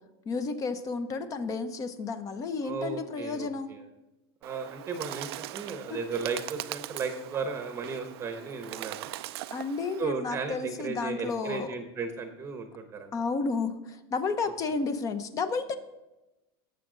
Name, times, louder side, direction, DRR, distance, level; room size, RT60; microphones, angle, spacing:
voice 1, 0.3-3.7 5.9-6.0 9.5-11.7 13.1-15.7, left 4 dB, 25° left, 11 dB, 0.8 m, -32 dB
voice 2, 2.6-3.8 4.4-9.1 10.0-13.1, right 5 dB, 20° right, 6 dB, 0.9 m, -35 dB
Bird, 4.4-10.0, right 16 dB, 80° right, 0.4 m, -41 dB
18.5 x 7.2 x 3.9 m, 1.0 s
supercardioid pair, 155°, 13 cm